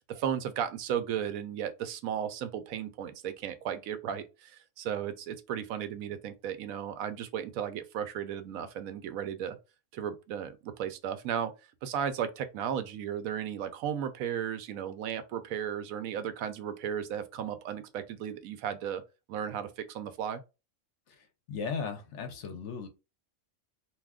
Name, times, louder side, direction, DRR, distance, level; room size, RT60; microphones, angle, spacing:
voice 1, 0.1-9.6 9.9-11.5 11.8-19.0 19.3-20.4, right 9 dB, 85° right, 1.0 m, -35 dB
voice 2, 21.1-22.9, left 5 dB, 65° left, 0.9 m, -37 dB
2.6 x 2.3 x 3.5 m
omnidirectional pair, 1.4 m